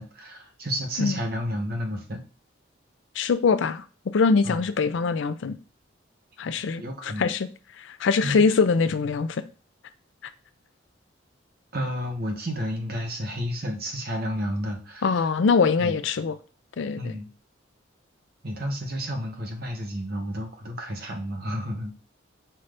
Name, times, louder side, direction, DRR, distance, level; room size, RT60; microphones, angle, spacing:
voice 1, 0.0-2.2 4.4-4.6 6.8-7.3 8.2-8.5 11.7-15.3 15.8-16.0 17.0-17.3 18.4-21.9, equal, 50° right, 1.0 m, -31 dB
voice 2, 3.2-3.8 4.1-5.6 6.4-7.5 7.8-9.4 15.0-16.3 16.8-17.1, left 5 dB, 70° left, 0.4 m, -23 dB
5.6 x 2.6 x 3.3 m
head